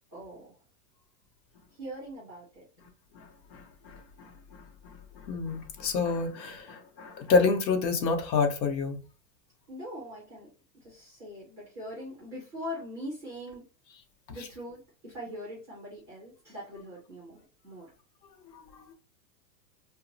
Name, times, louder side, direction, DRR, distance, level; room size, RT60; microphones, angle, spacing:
voice 1, 0.1-0.5 1.7-2.6 9.7-10.5 10.8-13.6 14.3-17.9, equal, 5° right, 0.5 m, -42 dB
voice 2, 3.1-9.0 18.5-18.9, left 4 dB, 80° left, 0.9 m, -29 dB
2.9 x 2.2 x 2.6 m
supercardioid pair, 170°, 50 cm